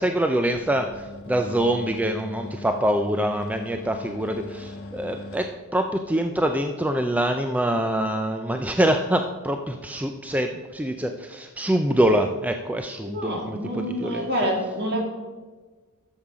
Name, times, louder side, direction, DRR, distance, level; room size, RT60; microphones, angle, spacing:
voice 1, 0.0-14.5, right 1 dB, 5° right, 5 dB, 0.4 m, -25 dB
sound 1, 0.5-5.5, left 2 dB, 65° left, 1.7 m, -40 dB
voice 2, 13.0-15.0, equal, 50° right, 1 dB, 2.3 m, -27 dB
11.0 x 7.2 x 4.9 m, 1.3 s
head